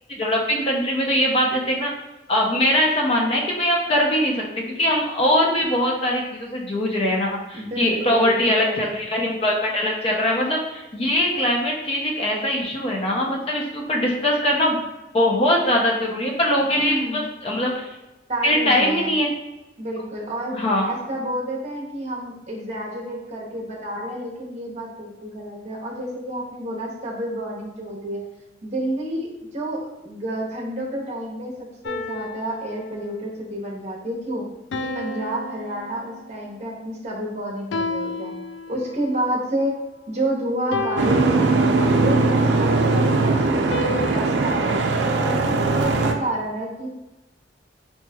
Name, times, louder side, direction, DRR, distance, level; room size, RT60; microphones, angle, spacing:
voice 1, 0.2-1.9 2.3-14.8 15.1-17.9 18.4-19.3 20.5-20.9, left 1 dB, 35° left, -1 dB, 0.6 m, -22 dB
voice 2, 7.5-8.9 16.7-17.2 18.3-19.2 19.8-20.6 20.9-28.2 28.6-31.5 31.8-34.4 34.7-38.3 38.7-39.8 40.1-44.8 45.2-46.9, right 1 dB, 40° right, -2 dB, 0.8 m, -29 dB
sound 1, 31.8-33.3 34.7-36.5 37.7-39.2 40.7-42.2 43.7-46.0, left 2 dB, 80° left, 0.3 m, -33 dB
Boat Water vehicle, 41.0-46.1, right 3 dB, 70° right, 0.4 m, -20 dB
4.1 x 3.0 x 2.3 m, 1.0 s
head